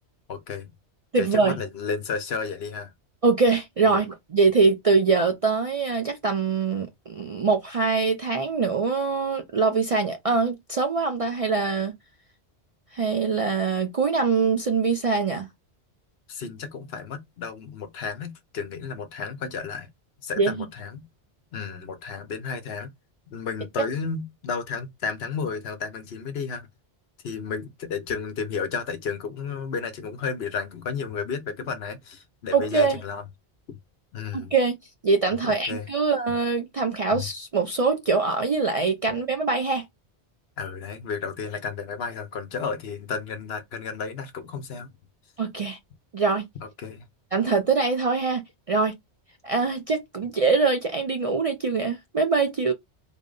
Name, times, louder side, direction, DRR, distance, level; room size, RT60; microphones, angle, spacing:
voice 1, 0.3-0.7 1.2-2.9 3.9-4.0 16.3-19.9 20.2-21.1 21.5-22.9 23.3-26.7 27.2-33.2 33.7-33.8 34.1-34.5 35.4-35.9 37.1-37.3 40.6-44.9 46.6-47.1, left 5 dB, 65° left, 1.0 m, -32 dB
voice 2, 1.1-1.6 3.2-11.9 12.9-15.5 20.4-20.6 32.5-33.0 34.3-34.8 35.0-39.8 45.4-45.8 46.1-46.4 47.3-48.4 48.7-48.9 49.4-52.7, right 4 dB, 50° right, 0.4 m, -23 dB
3.9 x 2.0 x 3.7 m
omnidirectional pair, 1.1 m